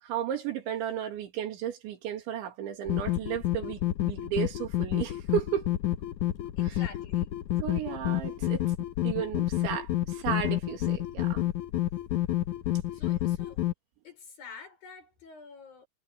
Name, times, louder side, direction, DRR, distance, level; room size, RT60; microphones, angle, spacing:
voice 1, 0.0-5.7 6.6-6.8 7.6-8.7 9.0-11.5, right 10 dB, 80° right, 4.9 m, -34 dB
sound 1, 2.9-13.7, left 13 dB, 90° left, 1.7 m, -29 dB
voice 2, 6.6-7.4 12.9-13.6 14.0-15.9, left 5 dB, 50° left, 7.4 m, -48 dB
omnidirectional pair, 5.2 m